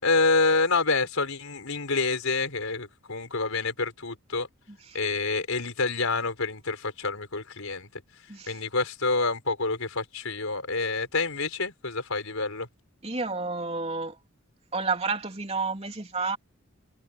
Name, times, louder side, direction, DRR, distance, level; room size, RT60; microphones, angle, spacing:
voice 1, 0.0-4.5 4.9-7.9 8.5-12.7, left 3 dB, 85° left, 4.5 m, -27 dB
voice 2, 4.7-5.0 8.3-8.6 13.0-14.2 14.7-16.4, right 4 dB, 30° right, 3.6 m, -30 dB
head